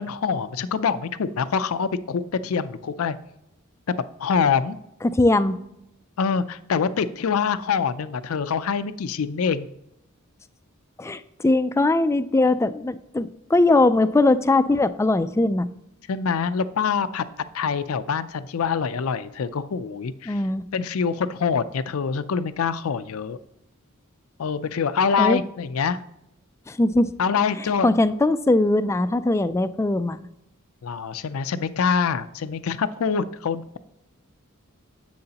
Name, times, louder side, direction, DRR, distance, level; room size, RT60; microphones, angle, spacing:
voice 1, 0.0-3.2 4.2-4.8 6.2-9.7 16.1-20.4 20.7-23.4 24.4-26.0 27.2-27.9 30.8-33.8, left 6 dB, 75° left, 13 dB, 0.5 m, -25 dB
voice 2, 5.0-5.6 11.0-15.7 20.3-20.6 25.2-25.4 26.7-27.1 27.6-30.2, left 2 dB, 15° left, 13 dB, 0.3 m, -20 dB
10.5 x 7.7 x 2.9 m, 0.81 s
head